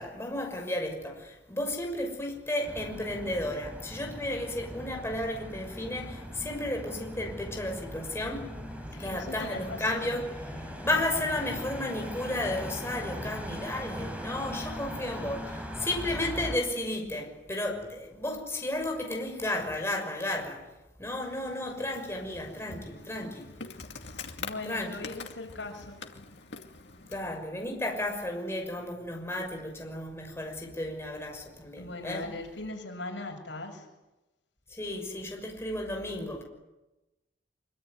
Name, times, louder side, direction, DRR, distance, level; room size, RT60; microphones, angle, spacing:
voice 1, 0.0-8.5 9.0-20.7 21.0-23.5 24.6-25.1 27.1-32.3 34.7-36.4, left 1 dB, 15° left, 2 dB, 6.1 m, -33 dB
sound 1, 2.6-16.6, equal, 10° right, 5.2 m, -40 dB
voice 2, 8.9-10.1 24.4-26.0 31.8-33.9, left 2 dB, 85° left, 3 dB, 7.4 m, -39 dB
Insect, 21.2-27.4, left 4 dB, 70° left, 2.5 m, -45 dB
25.0 x 25.0 x 9.5 m, 1.0 s
head